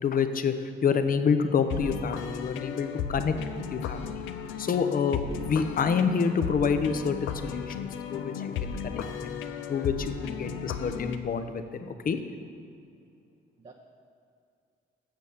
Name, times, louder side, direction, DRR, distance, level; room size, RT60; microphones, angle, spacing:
voice 1, 0.0-3.3 3.7-4.2 4.6-9.4 9.7-12.2, left 6 dB, 45° left, 9 dB, 0.7 m, -28 dB
sound 1, 1.7-11.2, left 7 dB, 85° left, 0.6 m, -35 dB
voice 2, 8.6-10.0 10.4-10.6 13.6-13.7, right 4 dB, 30° right, 1 dB, 0.7 m, -57 dB
7.7 x 6.2 x 7.0 m, 2.5 s
cardioid pair, 90°, 20 cm